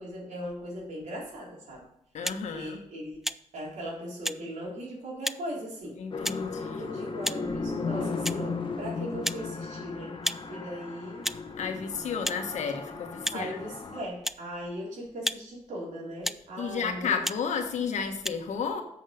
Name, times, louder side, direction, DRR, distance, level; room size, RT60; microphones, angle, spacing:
voice 1, 0.0-1.9 2.5-3.3 3.5-6.0 6.8-10.2 10.5-11.3 13.3-17.2, equal, 85° right, -3 dB, 3.8 m, -38 dB
voice 2, 2.1-2.8 6.0-6.9 11.6-13.6 16.6-18.8, left 6 dB, 75° left, 5 dB, 1.4 m, -32 dB
sound 1, 2.2-2.4 3.2-3.4 4.2-4.4 5.2-5.4 6.2-6.4 7.2-7.4 8.2-8.4 9.2-9.4 10.2-10.4 11.2-11.4 12.2-12.4 13.2-13.4 14.2-14.4 15.2-15.4 16.2-16.4 17.2-17.4 18.2-18.3, equal, ahead, 0.3 m, -31 dB
sound 2, 6.1-14.1, left 4 dB, 45° left, 1.2 m, -35 dB
7.9 x 6.4 x 5.2 m, 0.80 s
cardioid pair, 95°, 12 cm